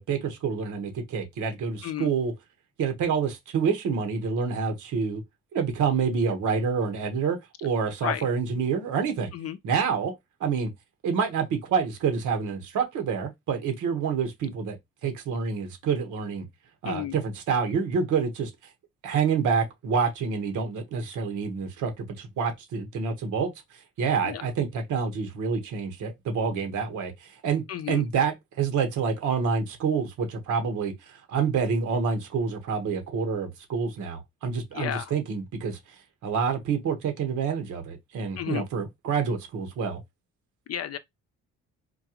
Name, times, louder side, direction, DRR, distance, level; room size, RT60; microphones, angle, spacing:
voice 1, 0.0-2.3 2.8-5.2 5.5-9.3 9.6-10.1 10.4-10.7 11.0-14.8 15.0-16.5 16.8-18.5 19.0-23.5 24.0-35.8 36.2-40.0, right 6 dB, 80° right, 1.3 m, -27 dB
voice 2, 16.8-17.2 24.2-24.4 27.7-28.1 34.7-35.1 38.4-38.6 40.7-41.0, left 11 dB, 55° left, 0.6 m, -32 dB
4.4 x 2.3 x 2.9 m
cardioid pair, 90°, 30 cm